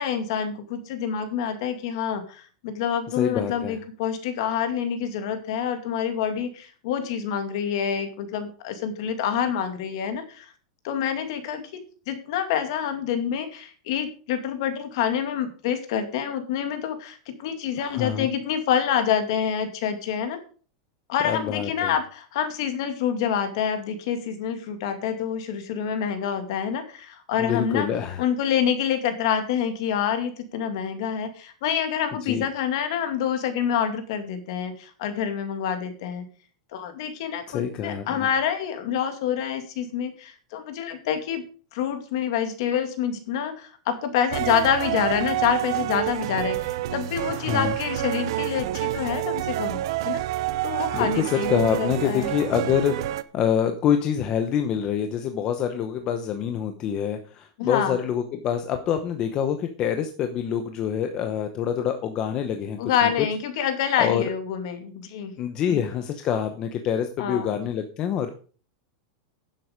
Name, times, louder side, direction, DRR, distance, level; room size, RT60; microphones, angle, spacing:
voice 1, 0.0-10.5 10.8-20.4 21.1-27.9 28.2-36.2 36.7-41.5 41.7-49.8 50.0-50.2 50.6-52.3 57.6-58.0 62.8-65.3 65.7-65.8 67.2-67.6, left 8 dB, 50° left, 7 dB, 2.3 m, -27 dB
voice 2, 3.1-3.7 17.8-18.3 21.2-21.9 27.4-28.2 32.2-32.4 37.5-38.3 47.3-47.7 50.9-63.1 64.0-64.2 65.4-68.3, left 8 dB, 25° left, 7 dB, 0.8 m, -26 dB
sound 1, 44.3-53.2, right 14 dB, 50° right, 0.7 m, -28 dB
11.0 x 7.7 x 5.1 m, 0.40 s
supercardioid pair, 180°, 3 cm